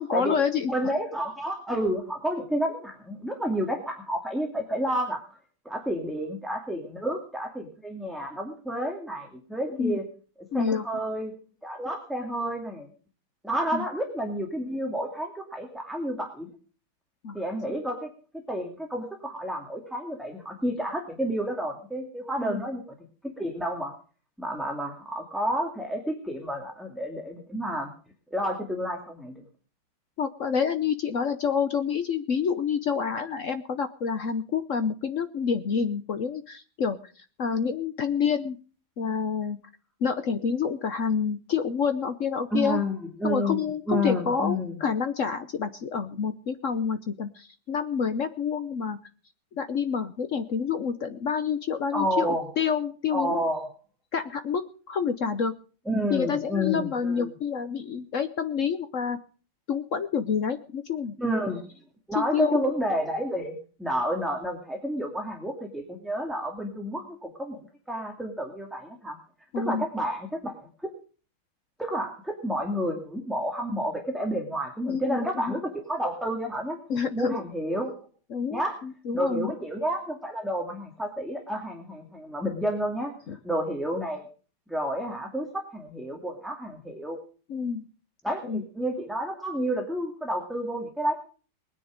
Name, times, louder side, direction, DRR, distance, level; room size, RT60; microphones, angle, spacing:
voice 1, 0.0-0.7 9.7-10.0 10.5-10.9 13.7-13.8 17.2-17.4 22.4-22.6 30.2-38.6 39.0-39.6 40.0-42.8 43.2-49.0 49.5-53.4 54.1-55.5 56.1-59.2 59.7-61.1 62.1-62.6 69.5-69.9 74.9-75.6 76.9-77.4 78.3-79.5 83.3-83.4 87.5-87.8 88.4-88.6, left 6 dB, 60° left, 10 dB, 0.8 m, -28 dB
voice 2, 0.7-5.2 5.6-10.0 10.5-11.3 11.6-12.9 13.4-16.5 17.3-18.1 18.5-22.8 23.2-23.9 24.4-27.9 28.3-29.4 42.5-44.8 51.9-52.5 53.1-53.7 55.9-57.3 61.2-61.6 62.1-67.6 67.9-69.2 69.6-70.7 71.8-76.8 77.1-77.9 78.5-78.8 79.1-83.1 83.4-84.2 84.7-87.2 88.2-91.1, equal, ahead, 1 dB, 2.0 m, -30 dB
20.5 x 9.9 x 5.1 m, 0.39 s
omnidirectional pair, 2.3 m